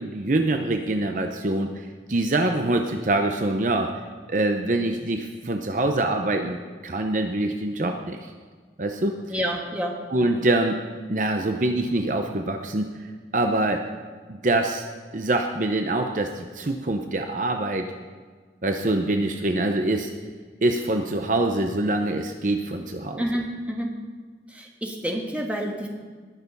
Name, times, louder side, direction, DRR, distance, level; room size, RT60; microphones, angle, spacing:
voice 1, 0.0-1.7 2.1-3.9 4.3-6.6 6.8-8.3 8.8-9.2 10.1-10.8 11.1-12.9 13.3-13.8 14.3-14.8 15.1-17.9 18.6-20.1 20.6-23.2, right 2 dB, 45° right, 5 dB, 0.7 m, -24 dB
voice 2, 9.3-10.0 23.2-23.9 24.5-25.9, equal, 10° right, 0 dB, 1.4 m, -28 dB
20.0 x 6.7 x 5.4 m, 1.5 s
head